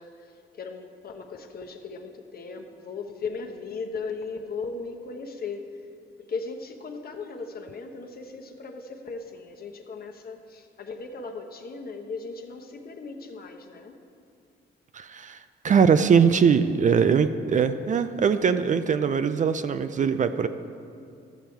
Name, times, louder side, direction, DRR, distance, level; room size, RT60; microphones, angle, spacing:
voice 1, 0.0-5.6 6.3-13.9, left 4 dB, 50° left, 4 dB, 1.0 m, -37 dB
voice 2, 14.9-20.5, right 6 dB, 40° right, 11 dB, 0.4 m, -21 dB
13.5 x 7.0 x 4.5 m, 2.5 s
cardioid pair, 90°, 20 cm